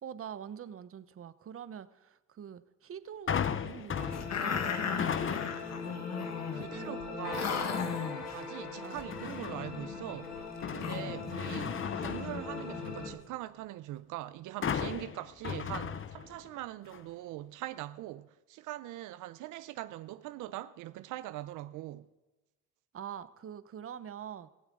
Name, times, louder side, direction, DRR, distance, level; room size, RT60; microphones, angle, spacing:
voice 1, 0.0-4.5 4.8-5.5 6.6-7.0 8.8-9.0 22.9-24.5, right 8 dB, 45° right, 0.9 m, -45 dB
sound 1, 3.3-5.8 6.3-6.7 9.1-9.8 10.2-13.1 14.6-16.6 16.9-17.0, left 7 dB, 45° left, 0.8 m, -36 dB
sound 2, 3.9-13.1, left 4 dB, 80° left, 3.9 m, -41 dB
sound 3, 4.1-6.7 7.0-7.1 7.3-8.4 8.9-13.2, left 7 dB, 60° left, 1.8 m, -37 dB
voice 2, 6.3-7.7 8.3-10.3 10.7-22.1, right 15 dB, 90° right, 0.5 m, -42 dB
17.0 x 15.0 x 3.8 m
cardioid pair, 90°, 30 cm